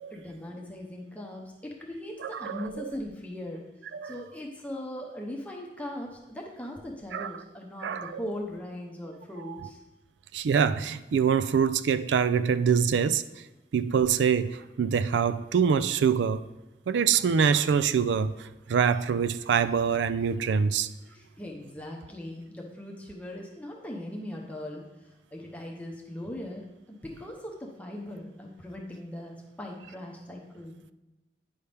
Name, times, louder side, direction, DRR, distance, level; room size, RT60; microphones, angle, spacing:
voice 1, 0.1-3.6 4.0-9.8 21.1-30.8, left 1 dB, 10° left, 0.7 m, -39 dB
voice 2, 2.2-2.9 3.9-4.2 7.1-7.3 7.8-8.1 9.5-9.7 10.3-13.2 13.7-16.4 16.9-18.3 18.7-20.9, right 7 dB, 80° right, 0.3 m, -25 dB
9.3 x 5.6 x 3.4 m
head